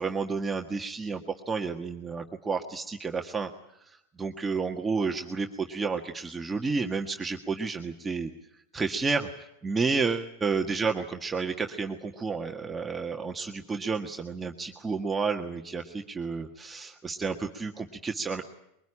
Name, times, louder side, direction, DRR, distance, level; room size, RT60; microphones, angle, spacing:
voice 1, 0.0-3.5 3.9-8.3 8.7-18.4, right 4 dB, 15° right, 3 dB, 1.6 m, -31 dB
22.5 x 19.5 x 10.0 m, 0.79 s
supercardioid pair, 120°, 0 cm